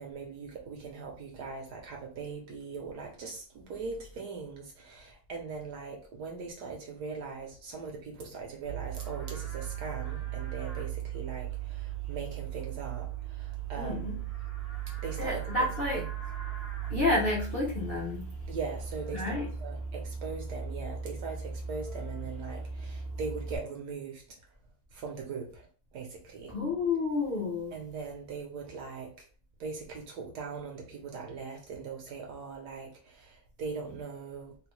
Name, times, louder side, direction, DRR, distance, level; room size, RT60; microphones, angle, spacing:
voice 1, 0.0-14.2 15.0-16.1 18.5-24.5 24.9-26.5 27.7-29.3 29.6-34.7, right 5 dB, 65° right, 1.1 m, -40 dB
Livestock farm animals working animals, 8.7-23.6, right 8 dB, 75° left, 1.7 m, -37 dB
voice 2, 13.8-14.2 15.2-16.0 16.9-18.2 19.1-19.5 26.5-27.7, left 2 dB, 50° left, 0.7 m, -30 dB
3.7 x 2.1 x 3.0 m
omnidirectional pair, 2.1 m